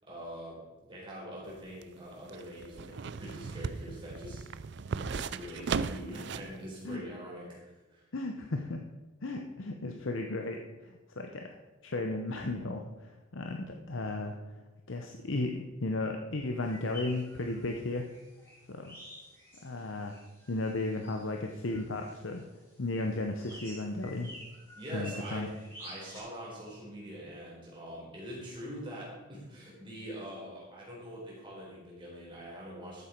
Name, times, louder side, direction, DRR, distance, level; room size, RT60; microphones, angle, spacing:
voice 1, 0.0-0.6 0.9-4.4 4.9-8.0 24.7-25.5 25.8-33.0, equal, 25° right, -5 dB, 4.3 m, -44 dB
sound 1, 1.5-6.6 6.9-7.0, right 5 dB, 55° right, 0.4 m, -37 dB
voice 2, 8.1-8.8 9.2-11.6 11.8-14.3 14.9-18.1 18.7-19.0 19.6-20.2 20.5-22.5 22.8-24.3 24.9-25.5, left 2 dB, 70° left, 3 dB, 0.8 m, -35 dB
sound 2, 16.6-26.2, equal, 10° left, 4.0 m, -51 dB
12.5 x 8.3 x 4.5 m, 1.1 s
head